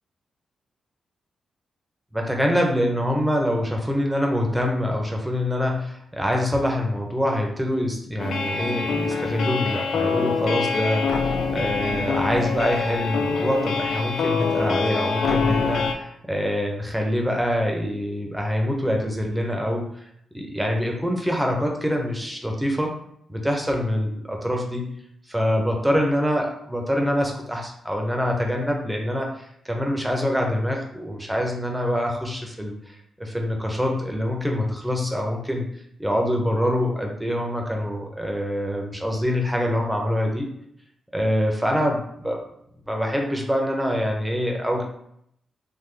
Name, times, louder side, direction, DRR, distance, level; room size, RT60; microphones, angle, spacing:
voice 1, 2.1-20.0 20.3-22.9 23.3-24.9 25.3-32.7 33.2-35.7 36.0-40.5 41.1-42.4 42.9-44.8, equal, 5° right, 1 dB, 0.6 m, -25 dB
sound 1, 8.2-15.9, left 5 dB, 75° left, 0.3 m, -25 dB
3.7 x 2.1 x 3.2 m, 0.71 s
wide cardioid pair, 130°, 0 cm